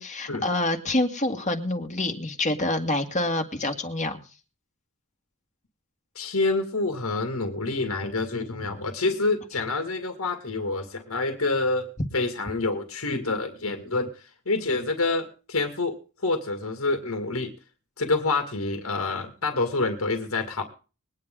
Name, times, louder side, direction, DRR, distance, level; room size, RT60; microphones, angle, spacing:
voice 1, 0.0-4.2, left 2 dB, 35° left, 5 dB, 1.9 m, -27 dB
voice 2, 6.2-11.9 12.1-16.0 16.2-17.5 18.0-20.6, left 3 dB, 75° left, 6 dB, 2.1 m, -27 dB
21.0 x 9.7 x 3.7 m, 0.34 s
head